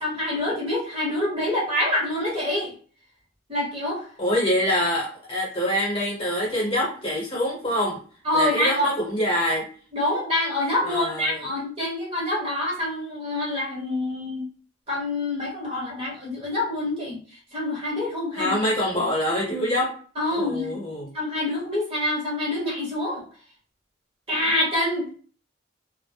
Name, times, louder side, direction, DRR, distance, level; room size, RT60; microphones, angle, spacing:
voice 1, 0.0-2.7 3.5-4.0 8.2-8.9 9.9-14.5 14.9-17.2 17.5-18.6 20.2-20.8 21.1-23.3 24.3-25.1, left 1 dB, 30° right, -4 dB, 0.9 m, -26 dB
voice 2, 4.2-8.0 8.3-9.7 10.9-11.4 18.3-19.9 20.3-21.1, equal, 25° left, -4 dB, 0.9 m, -25 dB
2.1 x 2.0 x 3.2 m, 0.43 s
head